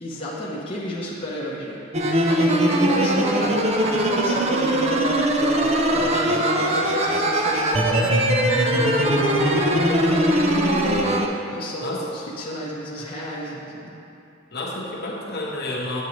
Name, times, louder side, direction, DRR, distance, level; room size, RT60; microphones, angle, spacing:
voice 1, 0.0-4.8 5.9-8.2 8.7-10.2 11.5-14.0, equal, 25° left, -6 dB, 0.8 m, -31 dB
sound 1, 1.9-11.3, right 1 dB, 30° right, 0.5 m, -20 dB
voice 2, 10.9-11.3 11.8-12.0 14.5-16.0, left 1 dB, 50° left, -3 dB, 0.9 m, -30 dB
8.3 x 7.3 x 3.0 m, 2.7 s
head